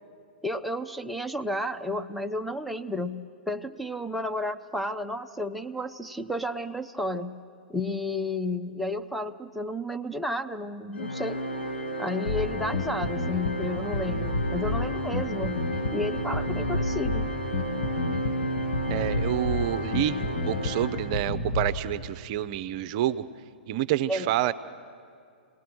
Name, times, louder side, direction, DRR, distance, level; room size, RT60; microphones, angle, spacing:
voice 1, 0.4-7.4 7.7-11.4 12.0-15.7 15.9-17.3 24.1-24.3, left 1 dB, ahead, 4 dB, 0.5 m, -32 dB
Organ, 10.9-21.6, equal, 85° left, 1.7 m, -33 dB
Bass guitar, 12.3-21.8, left 2 dB, 45° left, 1.5 m, -31 dB
voice 2, 18.9-23.2 23.7-24.5, right 12 dB, 40° right, 12 dB, 0.6 m, -28 dB
27.5 x 19.0 x 6.1 m, 2.4 s
figure-of-eight pair, 110°, 5 cm